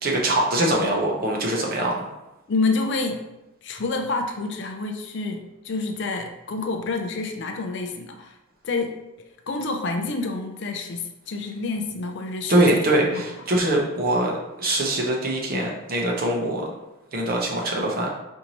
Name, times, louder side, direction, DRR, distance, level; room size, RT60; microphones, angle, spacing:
voice 1, 0.0-2.0 12.5-16.7 17.1-18.1, right 1 dB, 45° right, -1 dB, 0.7 m, -23 dB
voice 2, 2.5-3.2 3.6-8.4 8.6-12.8 13.1-13.2, left 3 dB, 55° left, 5 dB, 0.4 m, -28 dB
4.5 x 2.6 x 2.9 m, 0.95 s
head